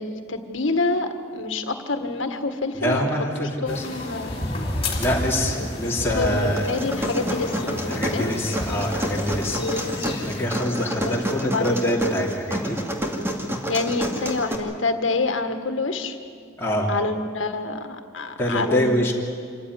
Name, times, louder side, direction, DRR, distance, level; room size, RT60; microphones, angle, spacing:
voice 1, 0.0-3.1 3.6-4.3 5.5-5.7 6.1-8.3 9.6-10.2 11.0-11.2 11.5-11.7 13.7-16.2 16.9-18.9, left 3 dB, 75° left, 7 dB, 1.7 m, -27 dB
voice 2, 2.7-3.8 5.0-6.6 7.9-9.6 10.2-12.8 16.6-16.9 18.4-19.1, equal, 15° left, -4 dB, 3.0 m, -25 dB
sound 1, 3.7-10.5, left 1 dB, 30° left, 3.6 m, -31 dB
sound 2, 6.6-14.6, equal, 15° right, 2.2 m, -28 dB
26.5 x 15.0 x 9.7 m, 2.3 s
head